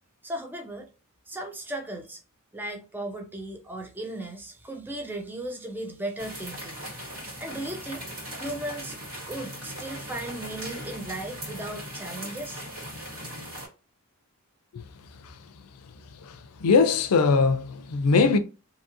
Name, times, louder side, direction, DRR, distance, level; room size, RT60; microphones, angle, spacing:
voice 1, 0.2-0.9 1.3-2.2 2.5-6.9 7.4-9.0 9.3-12.6, right 1 dB, 10° right, 0.4 m, -36 dB
sound 1, 6.2-13.7, equal, 65° right, 1.7 m, -39 dB
voice 2, 16.6-18.4, left 4 dB, 90° left, 0.4 m, -20 dB
2.7 x 2.6 x 2.5 m
head